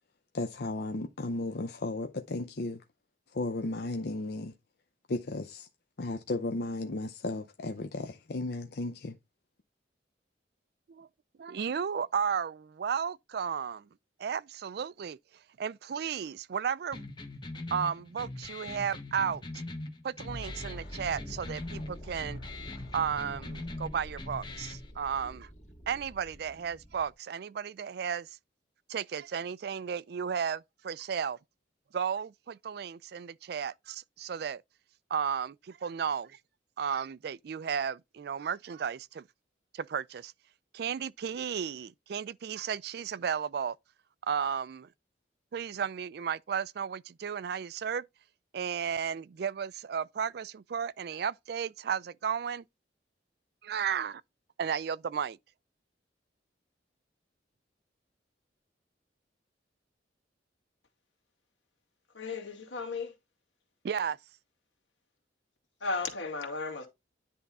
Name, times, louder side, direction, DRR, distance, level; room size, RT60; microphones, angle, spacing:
voice 1, 0.3-2.8 3.3-4.5 5.1-5.7 6.0-9.2, left 2 dB, 60° left, 0.6 m, -34 dB
voice 2, 11.4-13.9 14.2-15.2 15.6-17.1 17.7-19.4 20.0-22.4 22.9-25.5 25.9-28.3 28.9-31.4 31.9-34.6 35.1-36.4 36.8-39.2 39.7-40.3 40.7-43.8 44.3-44.9 45.5-48.0 48.5-52.6 53.6-54.2 54.6-55.4 63.8-64.2, right 7 dB, 60° right, 0.3 m, -34 dB
sound 1, 16.9-24.9, left 2 dB, 25° left, 1.0 m, -42 dB
sound 2, 20.3-27.1, equal, 40° left, 2.0 m, -46 dB
voice 3, 62.1-63.1 65.8-66.9, left 4 dB, 85° left, 2.2 m, -35 dB
10.0 x 3.5 x 4.1 m
head